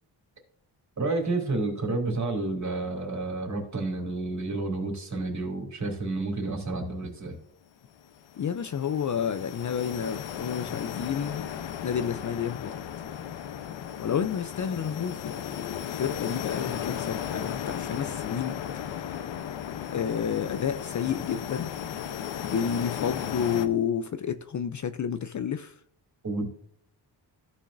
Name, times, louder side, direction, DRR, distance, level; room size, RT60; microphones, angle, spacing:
voice 1, 1.0-7.4 26.2-26.5, right 2 dB, 40° right, 2.9 m, -30 dB
sound 1, 8.0-23.7, left 9 dB, 90° left, 0.9 m, -36 dB
voice 2, 8.4-11.5 11.8-12.7 14.0-19.3 19.9-21.7 22.4-25.8, left 8 dB, 45° left, 0.5 m, -30 dB
14.5 x 6.2 x 2.6 m
wide cardioid pair, 120°, 44 cm